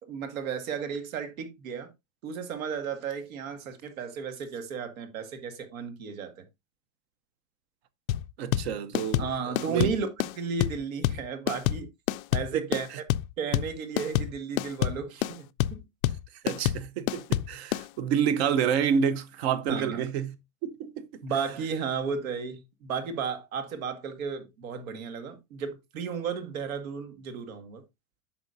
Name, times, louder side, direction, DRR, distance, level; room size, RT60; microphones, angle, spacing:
voice 1, 0.0-1.9 2.2-6.4 9.2-10.1 10.4-11.9 12.3-12.9 13.4-15.5 15.7-15.8 19.7-20.0 21.2-27.8, right 6 dB, 70° right, 2.0 m, -34 dB
sound 1, 8.1-17.9, left 14 dB, 75° left, 0.5 m, -27 dB
voice 2, 8.4-9.3 9.6-9.9 12.5-12.6 12.9-13.0 16.4-20.3 20.6-21.2, right 7 dB, 50° right, 0.9 m, -28 dB
8.9 x 6.2 x 2.6 m
supercardioid pair, 165°, 42 cm